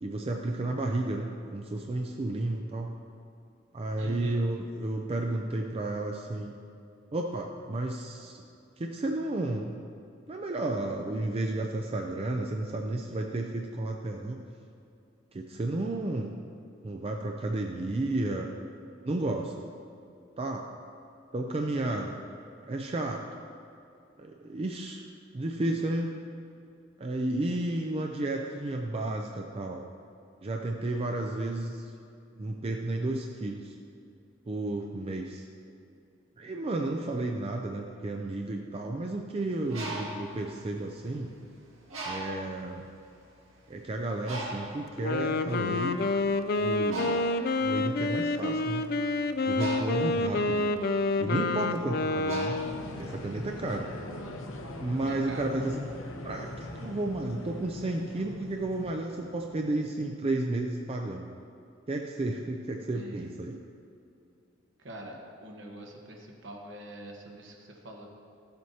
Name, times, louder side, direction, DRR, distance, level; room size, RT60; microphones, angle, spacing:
voice 1, 0.0-2.9 3.7-6.6 7.1-8.4 8.8-9.8 10.3-14.4 15.3-16.3 16.8-18.5 19.0-19.5 20.4-20.6 21.3-22.2 22.7-23.2 24.2-25.0 25.3-26.1 27.0-29.8 30.4-31.9 32.4-33.8 34.5-35.5 36.4-41.3 42.1-42.8 43.7-46.0 46.6-47.2 47.6-48.8 49.5-50.7 51.2-52.6 53.0-53.9 54.8-55.9 56.2-61.3 61.9-63.6, right 2 dB, 30° right, 2 dB, 0.4 m, -32 dB
voice 2, 4.0-4.4 50.3-50.7 55.0-55.5 62.9-63.2 64.8-68.1, right 1 dB, 65° right, 0 dB, 1.3 m, -44 dB
Bird, 39.5-41.4 41.9-42.6 43.3-43.4 43.7-53.4, right 2 dB, 85° right, 2.0 m, -40 dB
Wind instrument woodwind instrument, 44.9-52.9, left 3 dB, 50° left, 0.3 m, -28 dB
sound 1, 52.5-59.7, left 1 dB, 85° left, 0.8 m, -41 dB
13.5 x 7.7 x 2.8 m, 2.6 s
head